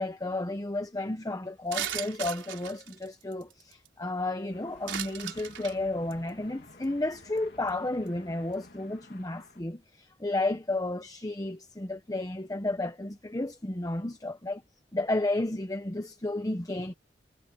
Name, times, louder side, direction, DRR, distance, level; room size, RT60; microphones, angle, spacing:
voice 1, 0.0-14.6 14.9-16.9, left 2 dB, 20° left, 0.9 m, -32 dB
sound 1, 1.7-3.9 4.9-5.8 6.1-6.3 6.8-6.9 7.1-7.4 7.7-7.8, right 10 dB, 85° right, 4.3 m, -36 dB
sound 2, 4.5-9.6, left 2 dB, 60° left, 3.1 m, -53 dB
head